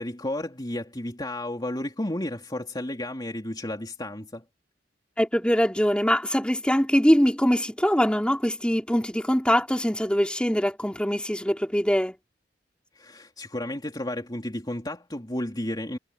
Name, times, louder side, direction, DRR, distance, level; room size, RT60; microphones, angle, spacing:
voice 1, 0.0-4.4 12.9-16.0, left 1 dB, 25° left, 3.1 m, -32 dB
voice 2, 5.2-12.2, equal, 5° left, 4.0 m, -23 dB
head